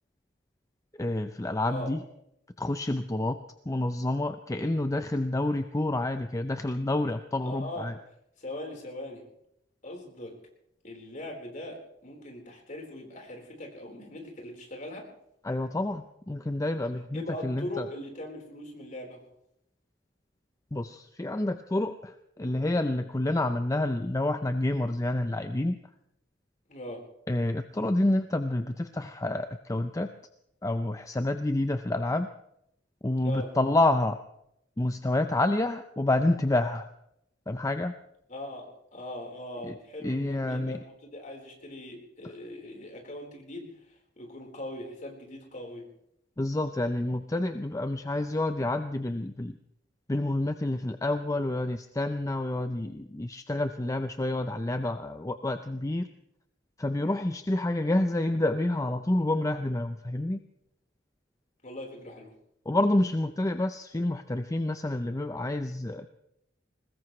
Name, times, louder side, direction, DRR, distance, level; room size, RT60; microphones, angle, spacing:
voice 1, 0.9-2.0 2.6-3.4 3.7-7.9 15.4-17.9 20.7-25.8 27.3-30.1 30.6-32.3 33.0-34.2 34.8-36.9 37.5-37.9 39.6-40.8 46.4-49.6 50.1-56.1 56.8-60.4 62.7-66.1, left 1 dB, 20° left, 8 dB, 0.6 m, -28 dB
voice 2, 7.4-7.9 8.4-9.2 9.8-10.3 10.8-15.1 17.1-19.2 26.7-27.0 33.2-33.5 38.3-45.8 61.6-62.3, left 1 dB, 45° left, 1 dB, 4.3 m, -40 dB
21.5 x 20.0 x 3.2 m, 0.76 s
head